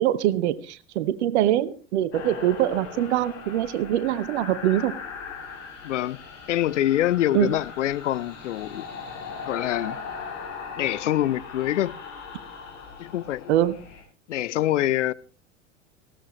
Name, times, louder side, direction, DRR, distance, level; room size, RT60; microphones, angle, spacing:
voice 1, 0.0-4.9 7.3-7.5 13.5-13.8, right 12 dB, 60° right, 1.0 m, -23 dB
sound 1, 2.1-14.0, left 5 dB, 45° left, 7.5 m, -39 dB
voice 2, 5.8-6.2 6.5-8.9 9.5-10.0 10.8-12.0 13.0-13.5 14.3-15.1, left 13 dB, 70° left, 0.6 m, -25 dB
19.0 x 15.5 x 3.1 m
figure-of-eight pair, 75°, 37 cm